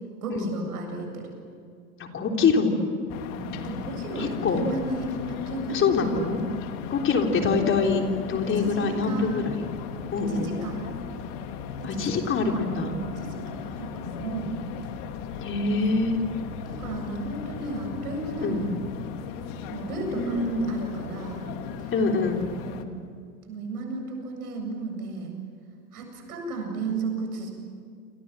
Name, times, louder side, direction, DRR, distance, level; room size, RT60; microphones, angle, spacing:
voice 1, 0.2-1.3 3.4-6.0 7.1-7.3 8.5-9.4 10.2-10.8 11.8-14.6 16.2-18.8 19.7-21.5 21.8-21.9 22.6-22.9 23.5-25.3 25.9-27.5, right 3 dB, 75° right, 3 dB, 7.9 m, -34 dB
voice 2, 2.0-2.7 4.2-4.6 5.7-6.4 6.9-8.0 8.3-9.7 10.1-10.5 11.8-12.9 15.4-16.2 18.4-18.7 20.1-20.7 21.9-22.4, left 4 dB, 25° left, 2 dB, 3.7 m, -25 dB
sound 1, 3.1-22.8, left 7 dB, 50° left, 2.4 m, -37 dB
28.0 x 27.5 x 7.6 m, 2.2 s
hypercardioid pair, 105°, 45 cm